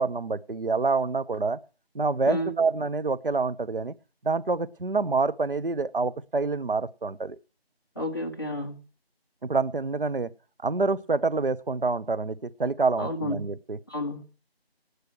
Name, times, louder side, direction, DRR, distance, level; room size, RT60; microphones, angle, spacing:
voice 1, 0.0-1.6 1.9-3.9 4.2-7.4 8.0-8.1 9.4-10.3 10.6-13.8, right 4 dB, 55° right, 15 dB, 0.8 m, -27 dB
voice 2, 7.9-8.8 13.0-13.5 13.9-14.3, left 1 dB, 20° left, -1 dB, 1.4 m, -31 dB
18.0 x 6.7 x 6.3 m, 0.36 s
figure-of-eight pair, 170°, 31 cm